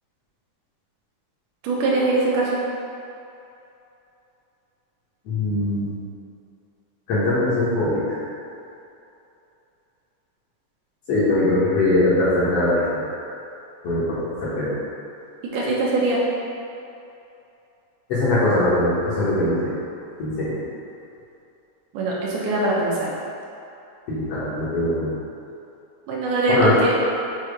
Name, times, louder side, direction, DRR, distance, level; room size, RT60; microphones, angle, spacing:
voice 1, 1.6-2.6 15.5-16.2 21.9-23.1 26.1-26.9, right 2 dB, 80° right, -5 dB, 2.4 m, -22 dB
voice 2, 5.3-5.9 7.1-8.2 11.1-13.0 13.8-14.7 18.1-19.6 20.2-20.5 24.1-25.1 26.5-26.8, left 1 dB, 60° left, -10 dB, 2.0 m, -21 dB
6.6 x 3.0 x 5.0 m, 2.8 s
omnidirectional pair, 3.7 m